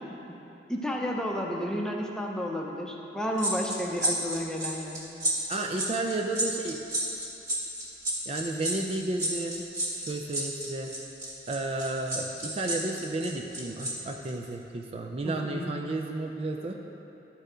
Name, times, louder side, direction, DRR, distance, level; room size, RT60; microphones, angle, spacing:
voice 1, 0.7-5.0 15.2-15.7, equal, 5° left, -1 dB, 0.6 m, -31 dB
sound 1, 3.4-13.9 14.2-14.4, right 1 dB, 20° right, 1.6 m, -32 dB
voice 2, 5.5-6.8 8.3-9.6 10.1-10.9 11.5-16.8, right 2 dB, 35° right, 2 dB, 0.4 m, -32 dB
11.5 x 4.6 x 5.0 m, 3.0 s
head